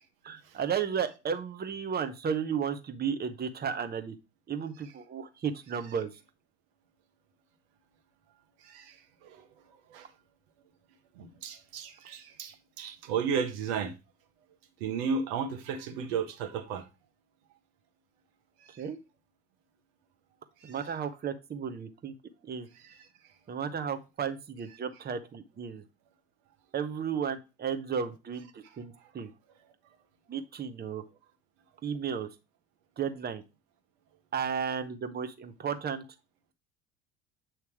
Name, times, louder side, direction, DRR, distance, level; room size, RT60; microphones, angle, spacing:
voice 1, 0.2-4.1 4.5-6.1 18.8-19.0 20.6-22.1 22.4-22.7 23.5-25.8 26.7-29.3 30.3-31.0 31.8-32.3 33.0-33.4 34.3-36.0, right 7 dB, 30° right, 1.1 m, -33 dB
voice 2, 11.2-13.9 14.8-16.8, right 6 dB, 60° right, 1.3 m, -33 dB
8.4 x 3.1 x 4.7 m
figure-of-eight pair, 60°, 34 cm